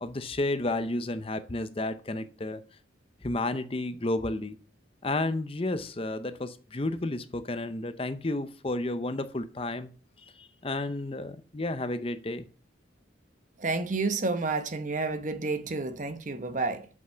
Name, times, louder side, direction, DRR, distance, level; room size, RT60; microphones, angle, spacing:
voice 1, 0.0-2.6 3.2-4.6 5.0-9.9 10.2-12.5, left 2 dB, 30° left, 0.6 m, -32 dB
voice 2, 13.6-16.9, right 3 dB, 40° right, 0.9 m, -30 dB
8.0 x 5.7 x 6.7 m
head